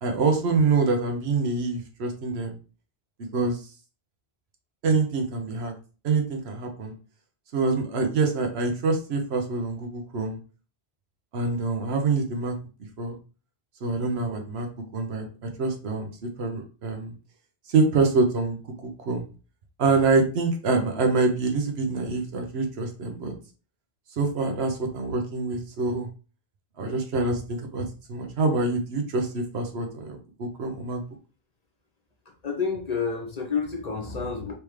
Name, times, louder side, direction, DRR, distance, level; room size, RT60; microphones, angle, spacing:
voice 1, 0.0-2.5 3.3-3.6 4.8-5.7 6.0-6.9 7.5-10.4 11.3-12.6 13.0-13.2 13.8-14.7 14.9-15.3 15.6-16.1 16.4-17.1 17.7-18.6 19.1-19.2 19.8-23.3 24.2-26.1 26.8-27.8 28.1-31.0, right 3 dB, 80° right, 4 dB, 1.0 m, -25 dB
voice 2, 32.2-34.6, left 5 dB, 40° left, 1 dB, 0.9 m, -29 dB
3.4 x 3.3 x 3.1 m, 0.36 s
omnidirectional pair, 1.1 m